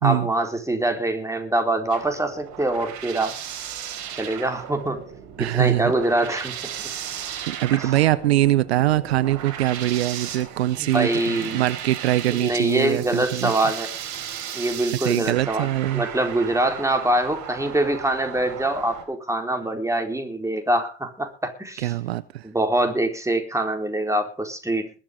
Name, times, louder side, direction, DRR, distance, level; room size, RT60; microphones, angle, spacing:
voice 1, 0.0-3.3 4.1-5.0 5.4-6.5 10.8-11.6 12.3-13.9 14.5-21.9 22.4-25.0, right 1 dB, 10° right, 4.3 m, -24 dB
sound 1, 1.9-19.0, right 9 dB, 65° right, 4.3 m, -36 dB
voice 2, 5.4-5.9 7.5-13.5 15.0-16.0 21.8-22.5, right 14 dB, 85° right, 0.6 m, -22 dB
21.0 x 7.4 x 5.4 m
hypercardioid pair, 60°, 31 cm